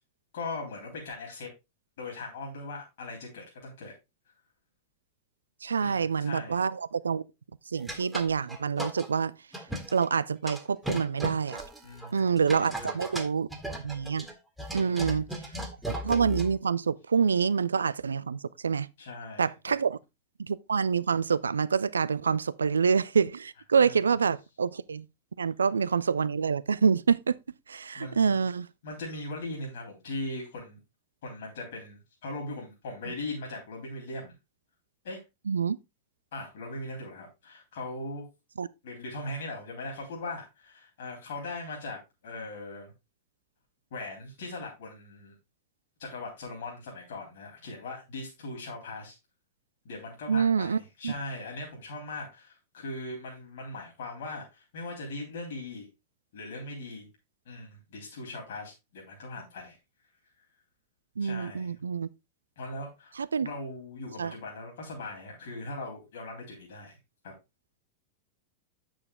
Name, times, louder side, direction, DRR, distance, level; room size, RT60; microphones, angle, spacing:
voice 1, 0.3-1.5 2.0-3.9 5.8-6.6 11.8-12.9 14.7-16.0 19.0-19.5 23.8-24.0 27.9-28.4 28.8-30.8 31.2-34.3 35.0-35.2 36.3-38.2 38.8-42.9 43.9-45.3 46.0-49.2 49.9-55.9 56.3-57.1 57.5-59.8 61.2-61.7 62.6-63.1 63.4-67.0 67.2-67.3, left 2 dB, 60° left, 3.6 m, -40 dB
voice 2, 5.6-7.2 7.7-9.3 9.9-11.6 12.1-13.5 13.8-14.3 14.7-15.2 15.9-18.9 19.4-20.0 20.4-25.0 25.4-27.3 27.7-28.7 35.5-35.8 38.6-38.7 50.3-51.1 61.2-62.1 63.2-63.5 64.2-64.3, right 6 dB, 70° right, 0.4 m, -27 dB
sound 1, 7.8-9.1 9.5-10.1 10.5-16.6, right 1 dB, 5° right, 1.9 m, -37 dB
8.7 x 6.4 x 3.5 m
figure-of-eight pair, 90°, 0 cm